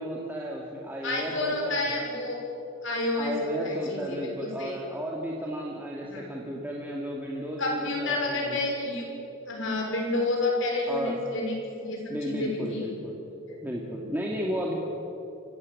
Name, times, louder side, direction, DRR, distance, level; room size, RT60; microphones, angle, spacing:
voice 1, 0.0-1.8 3.2-8.6 10.9-11.1 12.1-13.2 13.6-14.7, equal, 10° right, -3 dB, 2.3 m, -34 dB
voice 2, 1.0-2.4 2.8-4.8 6.1-6.2 7.6-9.0 9.5-12.9 13.5-13.6, left 2 dB, 65° left, 0 dB, 5.9 m, -30 dB
26.5 x 16.0 x 8.8 m, 3.0 s
head